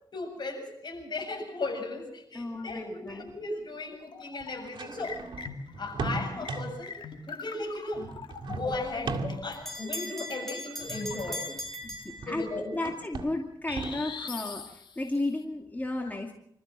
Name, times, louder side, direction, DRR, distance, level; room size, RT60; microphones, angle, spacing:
voice 1, 0.1-5.2 5.8-6.9 7.3-8.1 8.5-11.5 12.3-12.8, left 2 dB, 65° left, 2 dB, 7.4 m, -36 dB
voice 2, 2.3-3.3 11.8-16.3, left 2 dB, 20° left, 2 dB, 2.4 m, -34 dB
sound 1, 2.7-2.8 3.3-3.4 4.4-6.9 7.9-9.7 10.8-12.5 12.7-14.2, right 3 dB, 90° right, 2.1 m, -38 dB
sound 2, 3.8-4.7 5.0-11.6 13.7-15.2, left 5 dB, 80° left, 2.3 m, -43 dB
Bell, 8.7-12.8, left 1 dB, 5° left, 6.1 m, -39 dB
26.5 x 14.0 x 7.5 m, 0.71 s
wide cardioid pair, 80°, 8 cm